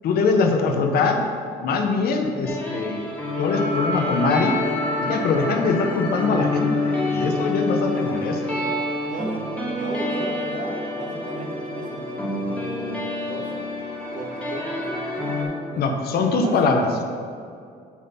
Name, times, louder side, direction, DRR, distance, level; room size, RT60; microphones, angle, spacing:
voice 1, 0.0-1.2 1.6-3.1 3.4-4.6 5.0-8.4 15.8-17.0, left 4 dB, 65° left, 4 dB, 1.1 m, -22 dB
sound 1, 2.4-15.4, left 2 dB, 5° left, 2.3 m, -27 dB
voice 2, 7.8-13.7 14.1-16.6, right 3 dB, 45° right, -1 dB, 1.7 m, -36 dB
7.5 x 6.4 x 5.7 m, 2.3 s
cardioid pair, 110°, 17 cm